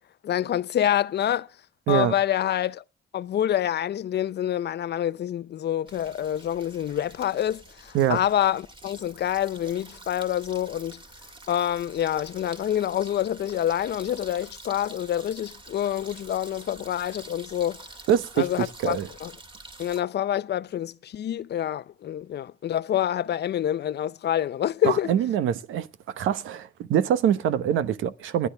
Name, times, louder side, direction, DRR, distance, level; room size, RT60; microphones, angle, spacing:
voice 1, 0.2-1.5 1.9-2.8 3.1-11.0 11.5-17.9 18.4-19.3 19.8-25.1, left 11 dB, 55° left, 0.7 m, -27 dB
sound 1, 5.9-20.0, right 2 dB, 25° right, 2.1 m, -47 dB
voice 2, 18.1-19.1 24.8-25.9 26.2-28.5, right 9 dB, 85° right, 1.0 m, -24 dB
27.5 x 9.6 x 3.4 m
cardioid pair, 90°, 20 cm